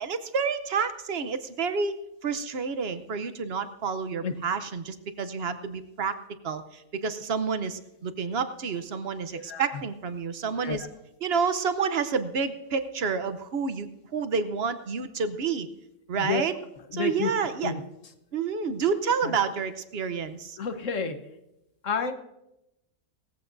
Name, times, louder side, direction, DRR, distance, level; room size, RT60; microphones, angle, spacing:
voice 1, 0.0-6.2 6.4-10.8 11.2-15.7 16.1-16.5 16.9-17.7 18.3-20.6, right 5 dB, 50° right, 11 dB, 0.9 m, -29 dB
voice 2, 9.3-9.8 10.6-10.9 16.1-16.5 16.9-17.3 17.6-17.8 19.2-19.4 20.6-21.2 21.8-22.1, left 5 dB, 65° left, 8 dB, 1.4 m, -30 dB
19.5 x 14.5 x 2.6 m, 0.88 s
omnidirectional pair, 1.5 m